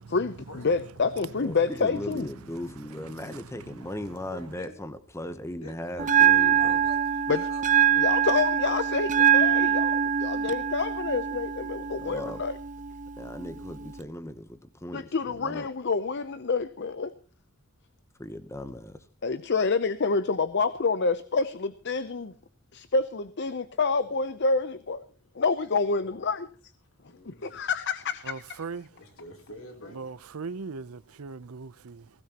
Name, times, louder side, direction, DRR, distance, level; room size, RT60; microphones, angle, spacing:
voice 1, 0.0-0.4 0.6-2.3 7.3-7.4 8.0-12.6 14.9-17.1 19.2-22.3 22.7-25.0 25.3-26.5 27.2-28.6, left 4 dB, 50° left, 0.7 m, -28 dB
voice 2, 1.4-6.8 12.0-12.4 13.2-15.7 18.2-19.0, left 1 dB, 10° left, 0.9 m, -38 dB
voice 3, 2.8-3.9 28.2-28.9 29.9-32.1, right 4 dB, 75° right, 0.6 m, -40 dB
voice 4, 4.3-4.8 5.6-8.0 25.8-26.3 27.0-27.7 28.0-28.1 28.9-30.5 31.1-31.2, left 1 dB, 70° left, 3.3 m, -47 dB
Bell, 6.0-14.0, right 9 dB, 35° right, 0.7 m, -24 dB
19.5 x 16.5 x 2.9 m
head